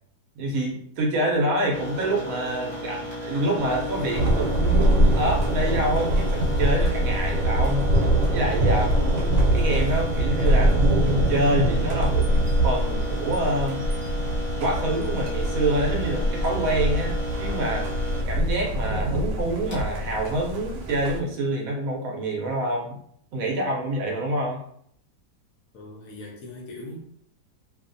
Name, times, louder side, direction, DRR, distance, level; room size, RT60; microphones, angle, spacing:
voice 1, 0.4-7.8 8.3-10.8 11.1-12.3 12.6-13.8 14.6-17.9 18.3-23.0 23.3-24.6, right 1 dB, 65° right, -1 dB, 0.9 m, -27 dB
sound 1, 1.7-21.3, equal, 40° left, 0.4 m, -35 dB
sound 2, 3.6-10.0, left 5 dB, 45° right, 0.6 m, -40 dB
Thunder, 4.1-21.2, right 1 dB, 85° right, 1.2 m, -23 dB
voice 2, 25.7-27.0, left 2 dB, 70° left, 0 dB, 0.8 m, -40 dB
2.6 x 2.4 x 2.5 m, 0.66 s
omnidirectional pair, 1.9 m